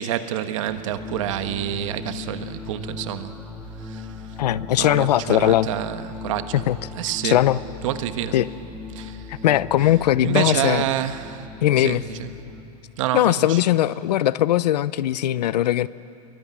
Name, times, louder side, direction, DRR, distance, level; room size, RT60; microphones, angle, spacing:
voice 1, 0.0-3.3 3.8-4.1 4.8-6.6 6.9-7.4 7.8-8.3 8.9-9.2 10.2-11.5 11.8-12.3 13.0-13.6, right 11 dB, 50° right, 9 dB, 1.4 m, -28 dB
sound 1, 0.7-12.6, left 3 dB, ahead, 1.7 m, -38 dB
voice 2, 4.4-5.7 6.5-6.8 7.2-7.6 8.3-8.5 9.3-10.8 11.6-12.0 13.1-15.9, left 13 dB, 80° left, 17 dB, 0.8 m, -20 dB
25.5 x 23.0 x 9.7 m, 2.8 s
supercardioid pair, 175°, 21 cm